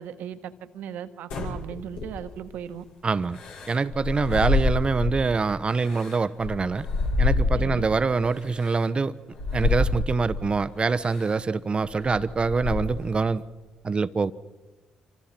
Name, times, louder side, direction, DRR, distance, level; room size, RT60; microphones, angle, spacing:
voice 1, 0.0-2.8 7.5-7.9, right 9 dB, 70° right, 1.5 m, -37 dB
sound 1, 1.3-2.5 3.3-5.3 5.7-7.9 8.6-8.7 9.3-10.5 11.0-11.3 11.8-13.1, left 3 dB, 75° left, 5.2 m, -27 dB
voice 2, 3.0-3.4 3.7-6.9 7.2-9.1 9.5-13.4 13.8-14.3, right 4 dB, 35° right, 0.9 m, -25 dB
29.0 x 25.5 x 4.5 m
hypercardioid pair, 45°, 3 cm